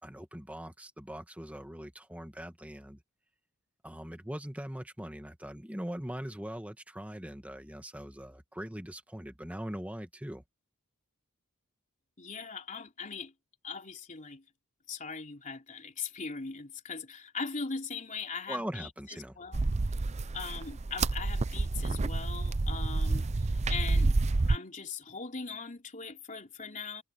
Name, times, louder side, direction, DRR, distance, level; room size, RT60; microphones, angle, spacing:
voice 1, 0.0-3.0 3.8-10.4 18.5-19.4, equal, 5° right, 1.9 m, -41 dB
voice 2, 12.2-13.3 13.6-14.4 14.9-19.6 20.3-23.3 23.7-24.2 24.5-27.0, left 5 dB, 35° left, 3.4 m, -40 dB
sound 1, 19.5-24.6, right 3 dB, 30° right, 0.5 m, -29 dB
head